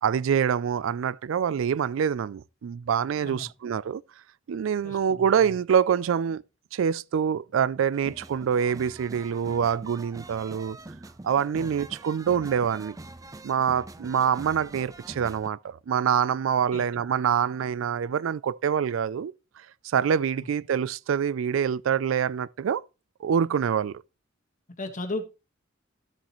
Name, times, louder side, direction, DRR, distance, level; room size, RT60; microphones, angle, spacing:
voice 1, 0.0-4.0 4.5-6.4 6.7-10.8 11.2-13.0 13.4-22.8 23.2-23.9, right 7 dB, 90° right, 0.4 m, -25 dB
voice 2, 4.8-5.2 11.6-11.7 16.7-16.8 20.4-20.5 24.8-25.2, left 2 dB, 40° left, 1.5 m, -35 dB
sound 1, 7.9-15.5, right 2 dB, 20° right, 0.5 m, -44 dB
12.5 x 7.2 x 3.0 m
head